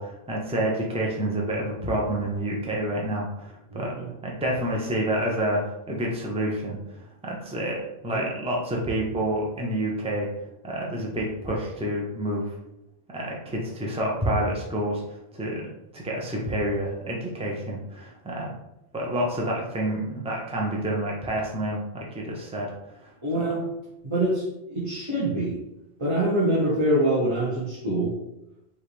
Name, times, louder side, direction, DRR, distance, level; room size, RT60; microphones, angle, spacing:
voice 1, 0.0-3.9 4.2-5.6 5.9-6.8 7.2-10.3 10.6-12.5 13.1-18.5 18.9-22.7, right 1 dB, 5° right, -3 dB, 0.7 m, -28 dB
voice 2, 3.7-4.1 8.1-8.3 23.2-23.6 24.0-25.6 26.0-28.1, right 1 dB, 25° right, -9 dB, 1.3 m, -25 dB
5.5 x 2.8 x 3.3 m, 0.87 s
omnidirectional pair, 1.2 m